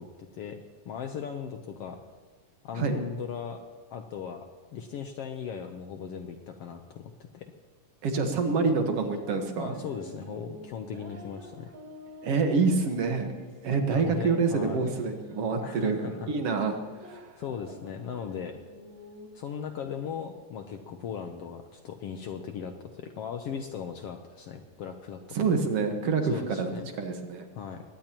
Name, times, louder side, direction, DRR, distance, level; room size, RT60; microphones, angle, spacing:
voice 1, 0.0-2.0 2.6-3.6 3.9-4.5 4.7-7.5 9.6-11.7 13.9-14.9 15.6-16.3 17.4-18.6 19.3-25.4 26.2-26.9 27.5-27.8, left 7 dB, 70° left, 6 dB, 1.5 m, -38 dB
voice 2, 8.0-9.7 12.2-13.3 13.6-17.2 25.4-26.7 27.0-27.5, right 4 dB, 55° right, 5 dB, 2.2 m, -27 dB
sound 1, 9.0-19.3, right 1 dB, 40° right, 3.2 m, -48 dB
22.5 x 18.0 x 3.0 m, 1.4 s
omnidirectional pair, 3.5 m